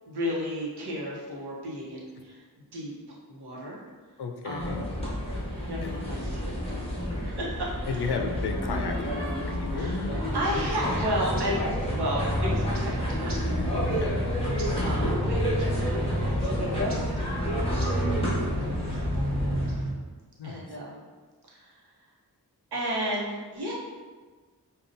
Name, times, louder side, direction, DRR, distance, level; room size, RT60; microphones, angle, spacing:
voice 1, 0.1-2.4 2.7-3.8 4.4-4.8 5.6-8.1 9.7-10.0 10.3-11.6 11.9-19.7 20.4-21.0 21.5-21.9 22.7-23.7, equal, 85° right, -4 dB, 0.9 m, -34 dB
voice 2, 4.2-4.9 5.8-6.0 7.9-10.2 13.9-14.2 16.7-17.0 19.5-19.7 20.4-20.6, left 4 dB, 80° left, 4 dB, 0.5 m, -34 dB
sound 1, 4.6-19.7, equal, 15° left, 1.2 m, -30 dB
sound 2, 9.9-19.9, equal, 60° right, 0.7 m, -32 dB
5.3 x 2.3 x 2.6 m, 1.4 s
wide cardioid pair, 100°, 39 cm